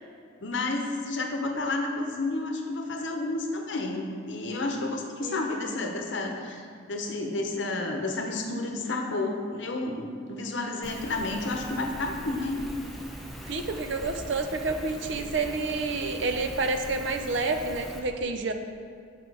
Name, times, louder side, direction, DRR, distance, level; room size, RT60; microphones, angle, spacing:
voice 1, 0.4-12.6, left 2 dB, 65° left, 3 dB, 0.8 m, -31 dB
voice 2, 5.2-5.6 13.4-18.5, right 3 dB, 65° right, 6 dB, 0.5 m, -29 dB
Rain, 10.8-18.0, equal, ahead, 0.7 m, -41 dB
6.1 x 6.0 x 4.8 m, 2.2 s
head